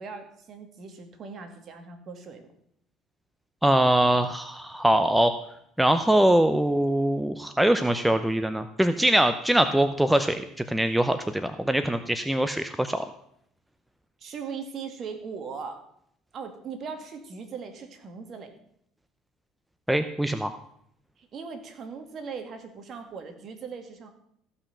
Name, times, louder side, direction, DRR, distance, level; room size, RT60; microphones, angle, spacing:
voice 1, 0.0-2.5 14.2-15.9 16.3-18.5 21.2-24.1, right 5 dB, 45° right, 6 dB, 2.2 m, -39 dB
voice 2, 3.6-5.3 5.8-13.1 19.9-20.5, right 1 dB, 5° right, 9 dB, 0.7 m, -23 dB
15.0 x 5.8 x 6.8 m, 0.71 s
supercardioid pair, 105°, 0 cm